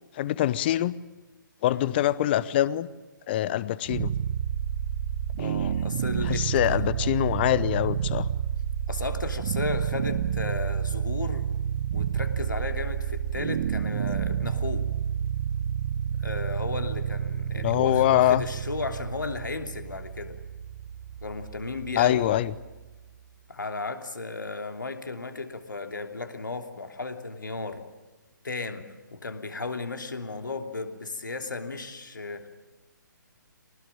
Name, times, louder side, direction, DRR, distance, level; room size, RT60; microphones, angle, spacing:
voice 1, 0.1-0.9 1.6-2.9 3.3-4.1 5.4-5.5 6.2-8.3 17.5-18.4 22.0-22.5, left 13 dB, 30° left, 19 dB, 0.8 m, -24 dB
sound 1, 3.9-22.9, right 9 dB, 40° right, 0.9 m, -30 dB
voice 2, 5.4-7.1 8.9-11.5 11.9-14.8 16.2-20.4 21.2-22.3 23.5-27.8 28.4-28.9 29.1-32.5, left 3 dB, 70° left, 7 dB, 3.0 m, -34 dB
24.0 x 19.5 x 8.9 m, 1.2 s
figure-of-eight pair, 135°, 11 cm